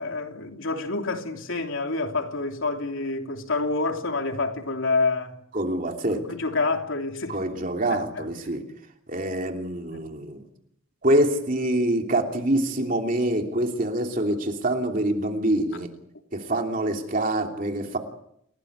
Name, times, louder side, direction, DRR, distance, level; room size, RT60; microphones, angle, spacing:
voice 1, 0.0-5.4 6.1-7.4 7.9-8.3 9.9-10.0, left 3 dB, 70° left, 3.2 m, -28 dB
voice 2, 5.5-6.2 7.3-8.6 9.1-10.4 11.0-15.9 16.3-18.0, right 1 dB, 40° right, 3.0 m, -25 dB
29.0 x 18.5 x 8.1 m
head